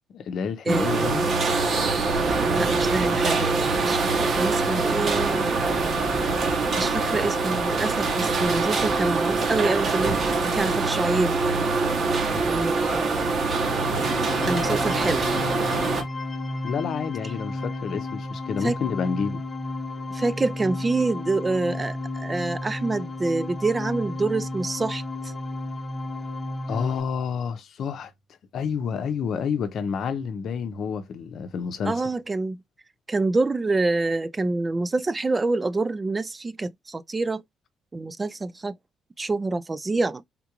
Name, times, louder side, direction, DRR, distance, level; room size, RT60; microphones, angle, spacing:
voice 1, 0.1-1.3 16.6-19.4 26.7-28.1 28.5-31.9, left 6 dB, 65° left, 0.6 m, -29 dB
voice 2, 0.7-1.3 2.5-5.5 6.8-11.3 12.5-13.5 14.4-15.3 18.6-18.8 20.1-25.3 31.9-32.6 33.1-37.4 37.9-38.8 39.2-40.2, right 3 dB, 25° right, 0.3 m, -27 dB
sound 1, 0.7-16.0, right 3 dB, 55° right, 1.0 m, -24 dB
sound 2, 13.4-27.0, left 2 dB, 25° left, 0.9 m, -33 dB
3.7 x 2.4 x 2.9 m
cardioid pair, 90°, 0 cm